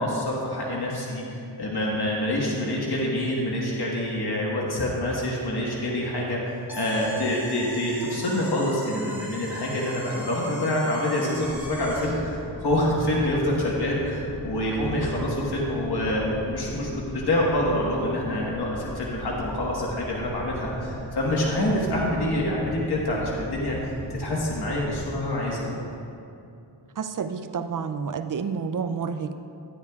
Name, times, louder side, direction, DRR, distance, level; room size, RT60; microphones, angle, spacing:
voice 1, 0.0-6.4 6.8-25.7, left 1 dB, 60° left, -4 dB, 1.5 m, -26 dB
sound 1, 6.7-12.2, right 1 dB, 5° right, 1.8 m, -40 dB
sound 2, 11.3-25.0, equal, 10° left, 1.5 m, -39 dB
voice 2, 27.0-29.3, right 6 dB, 50° right, 9 dB, 0.5 m, -29 dB
12.5 x 9.4 x 2.4 m, 2.6 s
wide cardioid pair, 60°, 43 cm